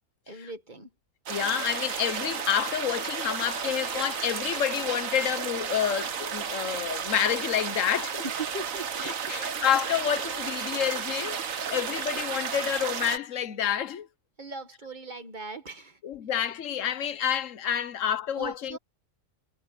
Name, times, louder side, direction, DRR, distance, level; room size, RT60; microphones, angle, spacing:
voice 1, 0.3-0.9 8.2-9.1 14.4-16.0 18.4-18.8, right 3 dB, 35° right, 2.1 m, -39 dB
voice 2, 1.3-8.3 9.0-11.4 11.7-14.1 16.0-18.8, left 9 dB, 70° left, 1.3 m, -29 dB
sound 1, 1.3-13.2, right 7 dB, 80° right, 1.6 m, -33 dB
omnidirectional pair, 1.4 m